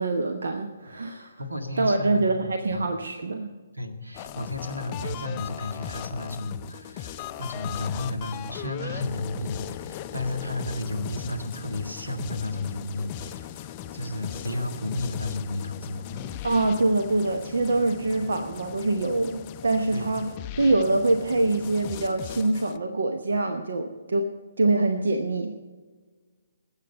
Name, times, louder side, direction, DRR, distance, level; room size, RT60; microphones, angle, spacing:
voice 1, 0.0-1.3 1.8-3.5 16.4-20.2 20.6-24.3 24.6-25.5, right 2 dB, 60° right, 6 dB, 0.9 m, -24 dB
voice 2, 1.1-2.9 3.7-13.7 13.9-16.2 18.2-18.3 19.9-20.1, left 2 dB, 80° right, 5 dB, 1.9 m, -33 dB
sound 1, 4.1-22.8, left 11 dB, 25° left, 0.5 m, -38 dB
20.0 x 8.2 x 5.4 m, 1.4 s
figure-of-eight pair, 130°, 0 cm